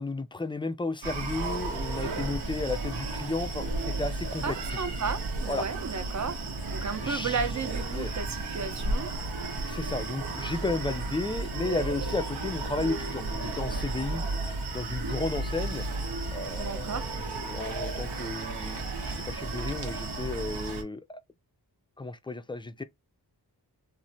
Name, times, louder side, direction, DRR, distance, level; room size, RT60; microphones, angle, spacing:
voice 1, 0.0-4.6 5.5-5.7 7.0-7.4 7.9-8.1 9.6-14.2 14.7-15.9 16.3-21.2 22.0-22.8, left 3 dB, 15° left, 0.3 m, -33 dB
Screaming, 1.0-20.8, right 2 dB, 80° right, 0.8 m, -33 dB
voice 2, 4.4-6.4 6.7-9.1 16.6-17.1, right 5 dB, 45° right, 0.6 m, -33 dB
3.1 x 2.1 x 2.7 m
cardioid pair, 45°, 40 cm